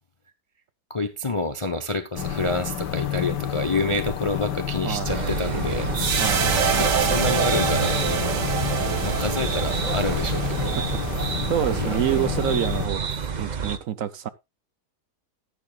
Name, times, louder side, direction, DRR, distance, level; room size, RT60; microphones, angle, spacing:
voice 1, 0.9-5.9 6.7-8.4 9.0-10.7 11.7-12.0, left 2 dB, 30° left, 0.6 m, -28 dB
sound 1, 2.1-12.9, left 9 dB, 85° left, 1.7 m, -30 dB
voice 2, 4.8-5.1 6.2-6.9 10.8-10.9 11.2-13.0 13.4-14.3, right 10 dB, 65° right, 1.0 m, -27 dB
sound 2, 5.1-13.8, right 6 dB, 45° right, 0.6 m, -29 dB
sound 3, 5.9-12.3, right 7 dB, 90° right, 2.1 m, -27 dB
14.0 x 10.0 x 2.3 m
omnidirectional pair, 1.8 m